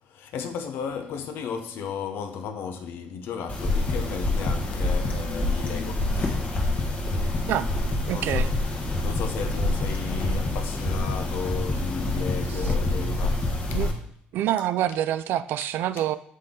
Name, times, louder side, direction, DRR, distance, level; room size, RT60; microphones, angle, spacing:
voice 1, 0.1-6.4 8.1-8.5 9.0-13.8, left 6 dB, 75° left, 0.8 m, -34 dB
Heartbeat Real, 3.5-13.9, left 2 dB, 40° left, 1.3 m, -26 dB
voice 2, 8.1-8.5 12.5-12.8 13.7-13.9 14.3-16.2, right 12 dB, 75° right, 0.4 m, -26 dB
6.5 x 4.0 x 3.8 m
supercardioid pair, 80°, 4 cm